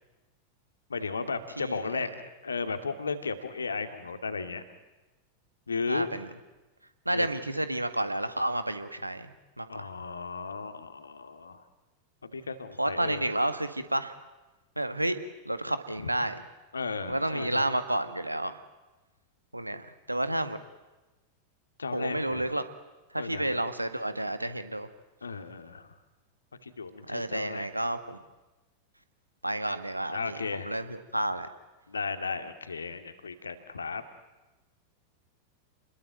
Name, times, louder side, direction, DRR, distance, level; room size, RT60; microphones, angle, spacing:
voice 1, 0.9-4.6 5.7-6.1 7.1-7.3 9.7-11.6 12.2-13.2 16.0-16.1 16.7-17.6 21.8-22.5 23.1-23.6 25.2-25.9 26.6-27.7 30.1-30.7 31.9-34.0, left 4 dB, 75° left, 8 dB, 2.4 m, -35 dB
voice 2, 1.6-1.9 5.9-6.3 7.0-9.9 12.8-14.1 14.7-15.2 15.4-16.4 17.1-18.6 19.5-20.6 21.9-22.6 23.1-24.9 27.1-28.2 29.4-31.5, right 1 dB, 85° right, 10 dB, 1.8 m, -31 dB
29.5 x 21.0 x 9.3 m, 1.1 s
figure-of-eight pair, 90°, 0 cm